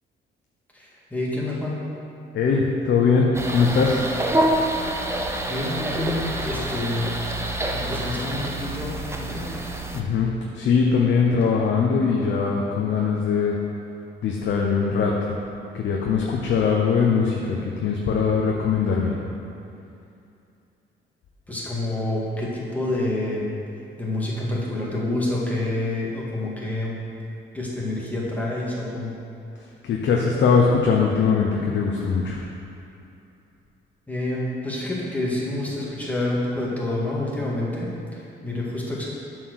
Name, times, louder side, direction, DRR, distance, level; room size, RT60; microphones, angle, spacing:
voice 1, 0.7-1.8 5.5-7.1 7.7-9.5 21.5-23.5 24.0-27.0 27.5-29.1 34.1-39.1, left 2 dB, 10° left, -5 dB, 1.9 m, -28 dB
voice 2, 2.3-4.1 9.9-13.6 14.2-15.4 15.7-19.1 29.6-32.4, left 5 dB, 65° left, -1 dB, 0.8 m, -21 dB
sound 1, 3.3-10.0, right 1 dB, 15° right, 0.7 m, -27 dB
7.4 x 4.6 x 6.3 m, 2.6 s
cardioid pair, 90°, 20 cm